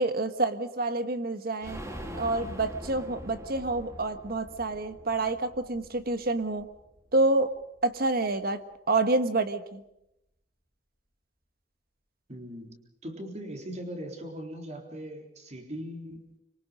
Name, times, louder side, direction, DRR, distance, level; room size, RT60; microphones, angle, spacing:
voice 1, 0.0-1.8 2.1-6.7 7.1-7.5 7.8-8.6 8.9-9.8, right 2 dB, 55° right, 10 dB, 1.5 m, -28 dB
sound 1, 1.6-7.2 7.6-7.7 8.0-8.1, equal, 15° right, 2.6 m, -43 dB
voice 2, 12.3-16.2, equal, 40° right, 3 dB, 3.9 m, -40 dB
25.5 x 24.0 x 5.2 m, 0.85 s
head